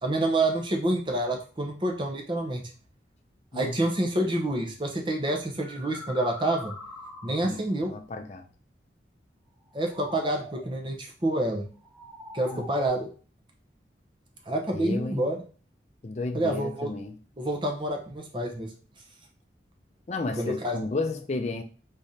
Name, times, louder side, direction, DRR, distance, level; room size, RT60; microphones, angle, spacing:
voice 1, 0.0-2.6 3.5-6.7 7.2-7.9 9.7-11.6 12.3-13.1 14.5-15.4 16.3-16.9 17.4-18.7 20.4-20.8, right 1 dB, 25° right, 2 dB, 0.8 m, -28 dB
sound 1, 4.4-4.6 5.4-7.7 9.6-10.8 11.7-12.9, left 1 dB, 5° left, 1.1 m, -44 dB
voice 2, 7.9-8.4 12.5-12.7 14.7-15.4 16.0-17.1 20.1-21.6, left 3 dB, 40° left, 6 dB, 0.5 m, -32 dB
3.7 x 3.4 x 4.1 m, 0.39 s
head